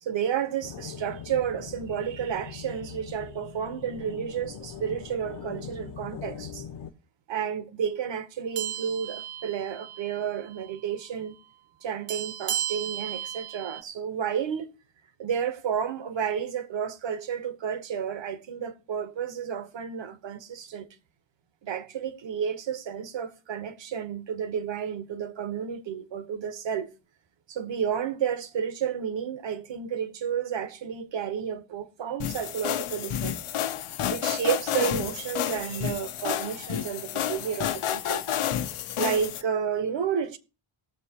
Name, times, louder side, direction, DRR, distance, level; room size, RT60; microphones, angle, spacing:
voice 1, 0.0-6.6 7.3-11.3 11.8-14.7 15.2-20.9 21.6-26.9 27.5-33.4 34.1-38.2 39.0-40.4, right 8 dB, 60° right, 1.2 m, -31 dB
sound 1, 0.6-6.9, left 8 dB, 55° left, 0.8 m, -41 dB
sound 2, 8.6-10.2 10.5-10.7 12.1-13.8, right 10 dB, 85° right, 0.7 m, -34 dB
sound 3, 32.2-39.4, left 10 dB, 85° left, 0.9 m, -30 dB
19.0 x 7.3 x 2.9 m
wide cardioid pair, 155°, 49 cm